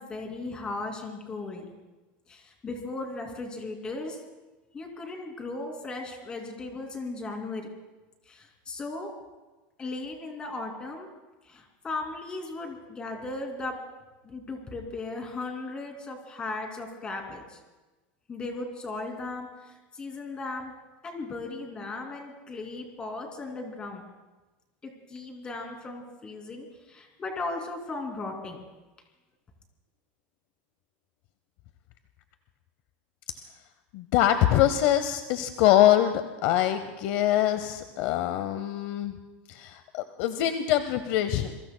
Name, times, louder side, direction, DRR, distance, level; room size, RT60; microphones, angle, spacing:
voice 1, 0.0-1.7 2.3-4.2 4.7-7.7 8.3-9.1 9.8-11.1 11.4-13.7 14.2-17.6 18.3-20.7 21.0-24.0 24.8-28.6, left 3 dB, 20° left, 2 dB, 2.6 m, -37 dB
voice 2, 33.9-39.1 39.6-41.5, left 12 dB, 55° left, 10 dB, 0.8 m, -24 dB
27.5 x 23.0 x 2.2 m, 1.1 s
supercardioid pair, 165°, 5 cm